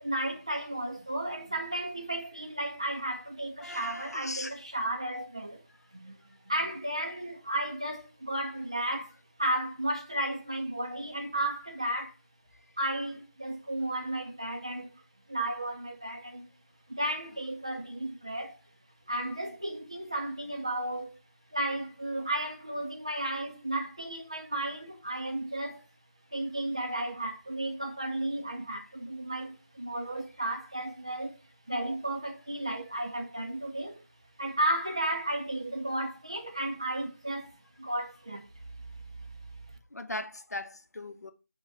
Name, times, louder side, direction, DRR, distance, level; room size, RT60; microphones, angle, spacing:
voice 1, 0.0-5.6 5.9-9.1 9.4-12.1 12.8-15.0 15.3-16.4 16.9-18.6 19.1-21.2 21.5-25.8 26.3-31.4 31.7-34.0 34.4-38.5 39.2-39.3, right 1 dB, 20° right, 0.4 m, -33 dB
voice 2, 3.6-4.5 39.9-41.3, left 2 dB, 75° left, 0.6 m, -38 dB
5.2 x 2.2 x 4.5 m
figure-of-eight pair, 170°, 9 cm